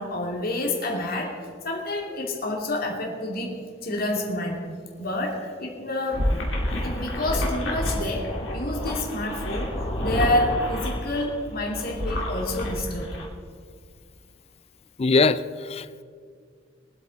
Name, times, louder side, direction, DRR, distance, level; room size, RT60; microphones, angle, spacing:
voice 1, 0.0-3.6 3.8-4.6 5.0-6.3 6.8-13.1, left 1 dB, 50° left, 0 dB, 2.5 m, -28 dB
sound 1, 6.1-13.3, left 1 dB, 70° left, 2.3 m, -29 dB
voice 2, 15.0-16.0, left 3 dB, 35° left, 15 dB, 0.4 m, -22 dB
22.5 x 8.3 x 4.1 m, 2.1 s
head